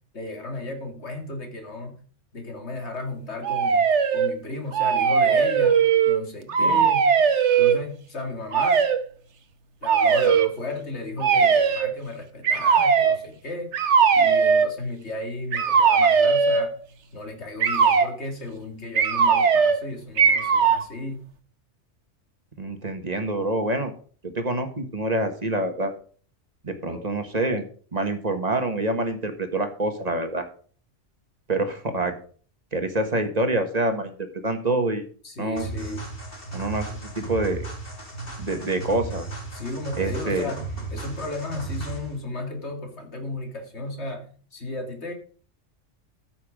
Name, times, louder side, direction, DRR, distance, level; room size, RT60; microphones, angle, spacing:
voice 1, 0.1-2.0 2.3-8.9 9.8-13.8 14.1-16.7 17.1-21.2 26.9-27.0 35.2-36.1 39.5-45.1, left 2 dB, 65° left, 3 dB, 2.6 m, -34 dB
sound 1, 3.4-4.3 4.7-6.2 6.5-7.8 8.5-9.0 9.8-10.5 11.2-11.9 12.4-13.2 13.7-14.7 15.5-16.7 17.6-18.1 18.9-19.8 20.2-20.8, right 6 dB, 70° right, 1.3 m, -19 dB
voice 2, 22.6-23.9 24.2-25.9 26.6-27.6 27.9-30.4 31.5-32.1 32.7-35.0 35.4-35.7 36.5-37.6 38.4-39.3 40.0-40.5, right 2 dB, 35° right, 6 dB, 1.5 m, -26 dB
sound 2, 35.6-42.2, right 3 dB, 50° left, 3.2 m, -35 dB
14.0 x 5.9 x 5.1 m, 0.43 s
omnidirectional pair, 1.2 m